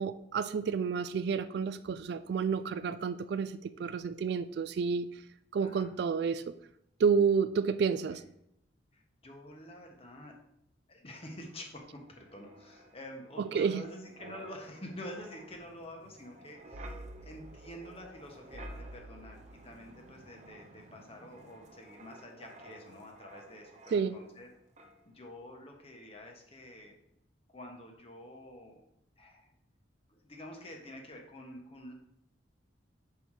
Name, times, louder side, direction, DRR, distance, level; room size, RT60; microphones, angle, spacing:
voice 1, 0.0-5.1 5.5-6.5 7.0-8.2 13.4-13.9 23.9-24.1, right 6 dB, 60° right, 13 dB, 0.3 m, -30 dB
voice 2, 8.9-10.3 10.9-24.5 24.8-26.9 27.5-28.8 29.2-29.5 30.1-31.9, left 1 dB, 30° left, 2 dB, 1.2 m, -48 dB
Wind, 12.1-24.5 24.8-25.0, right 1 dB, 40° right, 0.7 m, -51 dB
5.7 x 5.1 x 4.7 m, 0.77 s
head